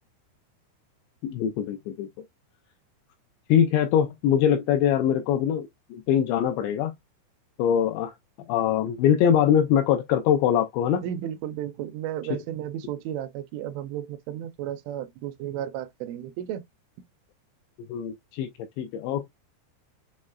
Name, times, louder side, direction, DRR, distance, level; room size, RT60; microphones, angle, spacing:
voice 1, 1.2-2.1 3.5-6.9 7.6-8.1 8.5-11.0 17.9-18.5 18.8-19.3, left 9 dB, 85° left, 2.5 m, -23 dB
voice 2, 11.0-16.6, right 11 dB, 85° right, 2.8 m, -33 dB
7.5 x 3.1 x 2.3 m
omnidirectional pair, 5.7 m